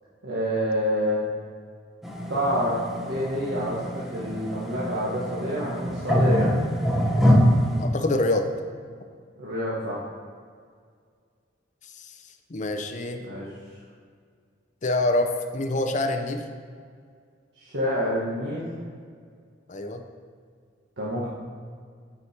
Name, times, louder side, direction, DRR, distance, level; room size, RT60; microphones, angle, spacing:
voice 1, 0.2-1.2 2.3-6.5 9.4-10.0 13.2-13.5 17.6-18.6 21.0-21.3, equal, 70° right, -8 dB, 1.4 m, -27 dB
sound 1, 2.0-7.8, equal, ahead, 0.8 m, -24 dB
voice 2, 7.8-8.5 12.0-12.1 12.5-13.2 14.8-16.5 19.7-20.0, left 2 dB, 40° left, 5 dB, 0.6 m, -26 dB
8.8 x 5.0 x 4.3 m, 2.1 s
head